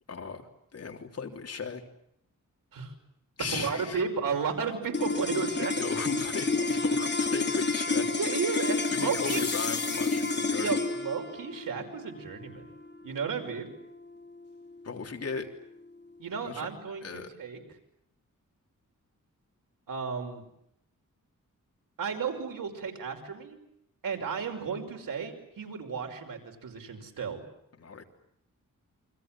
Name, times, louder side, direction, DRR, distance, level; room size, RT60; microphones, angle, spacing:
voice 1, 0.1-0.4 0.7-1.8 3.4-4.0 5.8-8.1 8.5-8.7 8.9-10.7 14.8-15.5 16.4-16.7 17.0-17.3 27.8-28.0, left 5 dB, 50° left, 3 dB, 3.5 m, -37 dB
voice 2, 3.5-5.7 8.1-9.4 10.6-12.7 13.0-13.8 16.2-17.6 19.9-20.4 22.0-23.6 24.0-27.4, right 6 dB, 85° right, 4 dB, 5.7 m, -33 dB
sound 1, 4.9-15.4, left 3 dB, 35° left, 3.2 m, -30 dB
sound 2, 8.5-10.7, left 7 dB, 75° left, 4.0 m, -40 dB
29.0 x 25.5 x 7.6 m, 0.76 s
wide cardioid pair, 135°, 32 cm